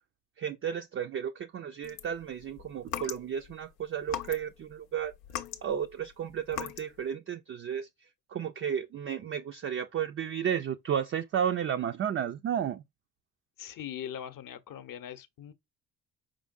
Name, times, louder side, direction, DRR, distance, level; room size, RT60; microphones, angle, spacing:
voice 1, 0.4-5.1 5.6-7.9 8.3-12.8, right 8 dB, 30° right, 0.4 m, -33 dB
sound 1, 1.8-3.6 4.0-4.7 5.0-7.0, left 10 dB, 85° left, 0.7 m, -39 dB
voice 2, 13.6-15.5, left 10 dB, 45° left, 0.7 m, -41 dB
4.9 x 3.7 x 2.4 m
hypercardioid pair, 45°, 47 cm